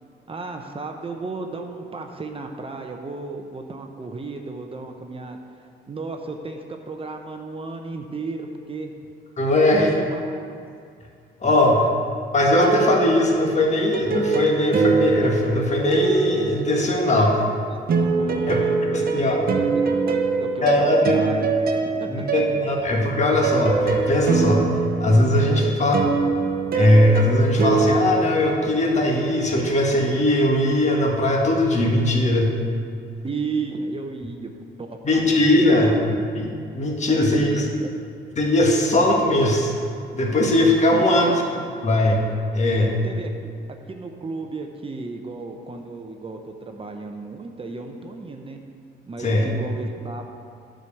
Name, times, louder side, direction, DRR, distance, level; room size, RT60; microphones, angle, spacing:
voice 1, 0.3-8.9 9.5-10.4 17.2-17.3 17.7-17.8 18.2-19.5 19.7-21.5 22.0-22.1 25.4-25.8 33.2-34.5 34.8-36.0 37.0-37.9 40.9-41.4 43.0-43.3 43.9-48.6 49.1-50.3, right 3 dB, 30° right, 3 dB, 0.8 m, -34 dB
voice 2, 9.4-9.9 11.4-11.8 12.3-17.4 18.5-18.6 18.9-19.4 20.6-21.1 22.1-24.6 25.0-25.9 26.7-32.5 35.0-35.9 36.3-37.7 38.4-39.7 40.1-41.4 41.8-42.3 42.5-43.0 49.2-49.5, left 1 dB, 35° left, -1 dB, 1.5 m, -19 dB
sound 1, 12.5-17.2 17.9-29.2, right 4 dB, 50° right, 1.0 m, -24 dB
9.6 x 5.1 x 7.0 m, 2.3 s
cardioid pair, 90°, 20 cm